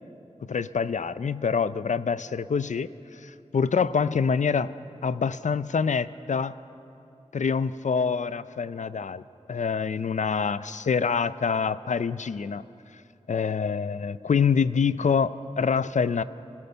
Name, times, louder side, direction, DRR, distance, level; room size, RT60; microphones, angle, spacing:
voice 1, 0.5-4.7 5.0-6.5 7.3-9.2 9.5-12.6 13.3-16.2, left 6 dB, 80° left, 15 dB, 0.5 m, -26 dB
26.5 x 16.5 x 6.9 m, 2.8 s
wide cardioid pair, 75°, 12 cm